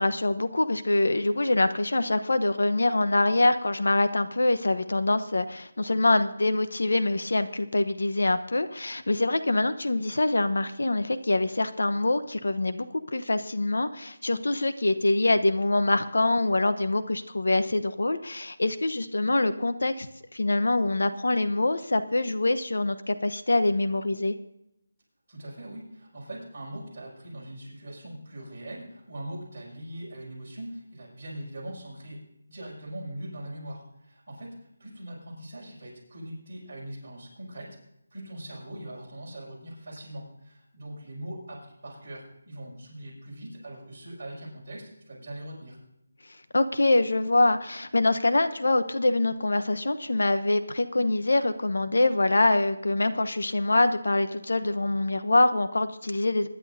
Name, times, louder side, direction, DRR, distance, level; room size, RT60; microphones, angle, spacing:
voice 1, 0.0-20.1 20.3-24.3 46.5-56.5, left 2 dB, 70° left, 11 dB, 0.9 m, -24 dB
voice 2, 25.3-37.8 38.1-45.8, right 1 dB, 20° right, -8 dB, 5.7 m, -41 dB
23.0 x 10.5 x 2.7 m, 0.81 s
figure-of-eight pair, 180°, 0 cm